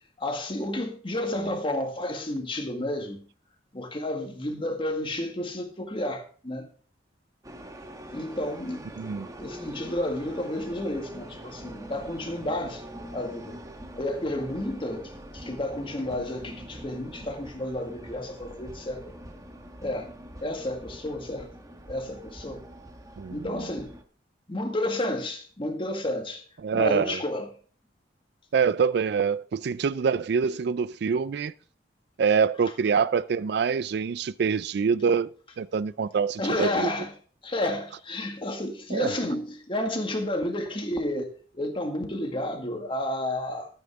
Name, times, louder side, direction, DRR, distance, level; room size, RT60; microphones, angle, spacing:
voice 1, 0.2-3.2 3.7-6.7 8.1-8.9 9.4-12.8 13.1-13.6 13.9-19.1 19.8-20.1 20.4-21.5 21.9-22.6 23.3-24.0 24.5-26.4 26.7-27.5 30.5-30.6 36.4-37.1 37.4-43.7, left 1 dB, 30° left, 1.9 m, -31 dB
sound 1, 7.4-24.0, right 1 dB, 20° right, 1.2 m, -44 dB
voice 2, 9.0-9.3 23.2-23.5 26.6-27.2 28.5-31.5 32.2-35.3 35.6-36.9 38.9-39.1, right 6 dB, 65° right, 0.4 m, -25 dB
13.0 x 8.9 x 3.6 m
head